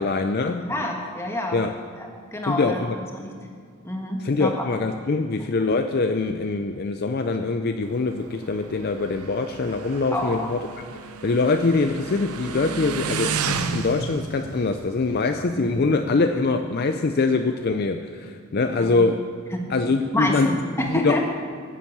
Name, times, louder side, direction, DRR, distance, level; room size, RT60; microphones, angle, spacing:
voice 1, 0.0-0.6 1.5-1.7 2.5-3.0 4.2-10.6 11.0-19.2 19.7-20.5 20.8-21.2, left 3 dB, 45° left, 6 dB, 0.4 m, -23 dB
voice 2, 0.6-1.6 2.0-3.3 3.8-4.6 10.1-10.5 15.5-15.7 18.7-19.0 19.5-19.7 20.1-21.2, left 1 dB, 10° left, 1 dB, 1.4 m, -28 dB
Motorcycle, 7.8-16.1, right 5 dB, 85° right, 0.7 m, -33 dB
11.0 x 7.5 x 8.4 m, 2.1 s
head